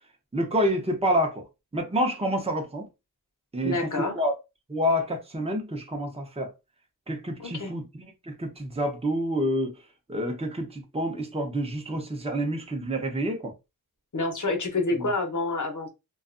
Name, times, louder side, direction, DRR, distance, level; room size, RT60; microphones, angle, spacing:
voice 1, 0.3-1.5 1.7-2.9 3.5-4.3 4.7-6.5 7.1-9.7 10.1-13.5 14.9-15.1, equal, 15° right, 0.7 m, -28 dB
voice 2, 3.6-4.1 7.4-7.7 14.1-15.9, left 2 dB, 50° left, 0.8 m, -28 dB
2.5 x 2.3 x 2.5 m
wide cardioid pair, 50°, 39 cm